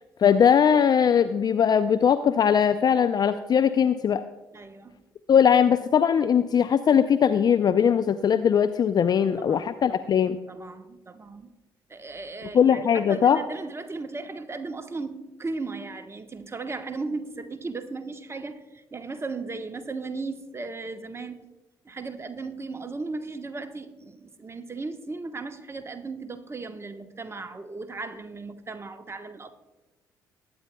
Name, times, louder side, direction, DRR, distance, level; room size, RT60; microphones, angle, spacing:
voice 1, 0.2-4.2 5.3-10.4 12.5-13.4, left 8 dB, 40° left, 11 dB, 0.4 m, -20 dB
voice 2, 4.5-5.0 9.3-10.1 10.5-11.6 11.9-21.5 21.8-29.5, right 3 dB, 25° right, 8 dB, 1.0 m, -36 dB
20.0 x 9.4 x 2.2 m, 1.1 s
hypercardioid pair, 50°, 10 cm